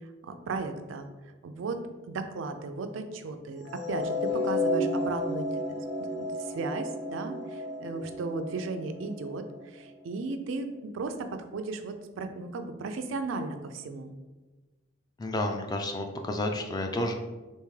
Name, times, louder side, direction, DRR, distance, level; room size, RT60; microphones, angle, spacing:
voice 1, 0.2-1.1 1.4-5.5 5.8-14.1, right 3 dB, 85° right, 7 dB, 0.4 m, -36 dB
sound 1, 3.7-9.9, left 1 dB, 85° left, 0.6 m, -32 dB
voice 2, 15.2-17.1, left 1 dB, 20° left, 4 dB, 0.3 m, -30 dB
3.5 x 2.6 x 3.1 m, 1.2 s
head